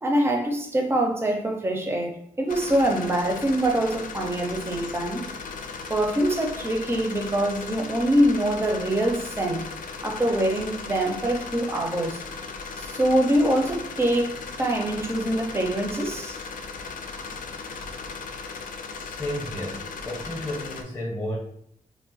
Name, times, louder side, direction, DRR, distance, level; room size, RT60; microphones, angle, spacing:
voice 1, 0.0-5.2 5.9-9.6 10.0-12.2 12.8-16.4, right 1 dB, 15° right, 0.5 m, -24 dB
sound 1, 2.5-20.8, left 4 dB, 80° left, 0.4 m, -37 dB
voice 2, 19.0-21.4, left 1 dB, 20° left, 0.8 m, -32 dB
2.4 x 2.1 x 3.8 m
wide cardioid pair, 160°, 14 cm